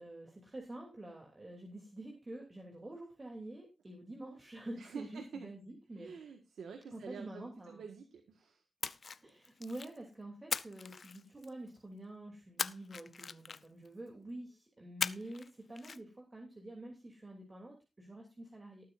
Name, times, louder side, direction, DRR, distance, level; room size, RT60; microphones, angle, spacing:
voice 1, 0.0-6.1 6.9-7.8 9.2-18.9, right 1 dB, 30° right, 1 dB, 3.0 m, -47 dB
voice 2, 4.8-5.5 5.9-8.6, right 6 dB, 90° right, 5 dB, 1.6 m, -48 dB
Splash splatter, 8.8-10.0 10.5-11.7 12.6-13.9 15.0-15.5 15.8-16.0, left 5 dB, 55° left, 0.6 m, -39 dB
19.0 x 9.3 x 2.6 m, 0.26 s
cardioid pair, 75°, 0 cm